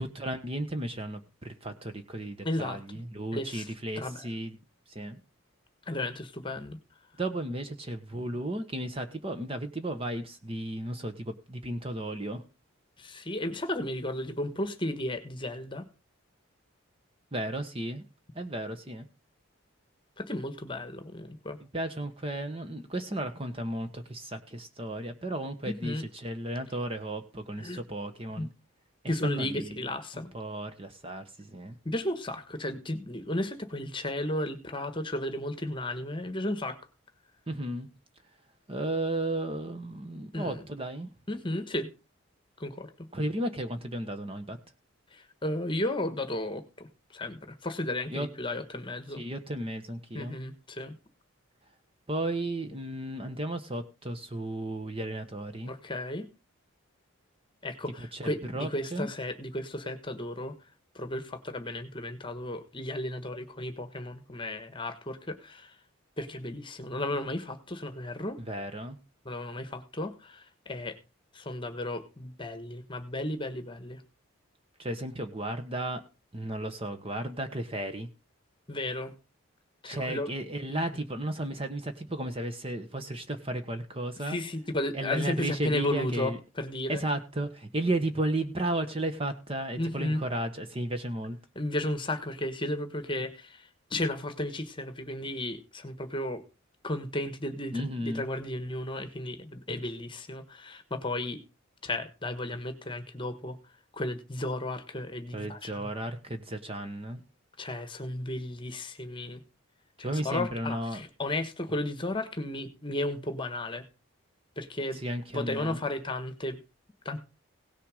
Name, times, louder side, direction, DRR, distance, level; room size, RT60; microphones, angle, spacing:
voice 1, 0.0-4.6 4.9-5.2 7.2-12.4 17.3-18.0 18.3-19.1 21.6-28.5 29.0-29.8 30.3-31.8 37.5-37.9 38.7-41.1 43.1-44.6 48.1-48.3 49.2-50.3 52.1-55.7 58.0-59.1 68.4-69.0 74.8-76.0 76.3-78.1 79.9-84.4 84.9-86.4 86.9-91.4 97.7-98.3 105.3-107.2 110.0-111.0 114.9-115.8, right 1 dB, 25° right, 8 dB, 1.2 m, -34 dB
voice 2, 2.4-2.8 3.3-3.7 4.0-4.2 5.9-6.8 13.0-15.9 20.2-21.6 25.6-26.1 27.6-27.8 28.4-28.5 29.1-30.3 31.8-36.8 40.3-40.6 41.3-41.9 42.6-43.1 45.1-46.9 47.1-49.2 50.1-50.9 55.7-56.3 57.6-60.5 60.9-65.7 66.2-68.4 69.2-71.0 71.3-74.0 78.7-79.1 79.8-80.3 80.7-80.8 84.2-87.0 89.8-90.2 91.5-96.4 96.8-101.4 101.8-103.6 103.9-105.9 107.6-109.4 110.0-113.8 114.6-115.0 115.3-116.6 117.0-117.2, left 1 dB, 20° left, 9 dB, 1.3 m, -34 dB
17.5 x 6.8 x 4.9 m, 0.30 s
head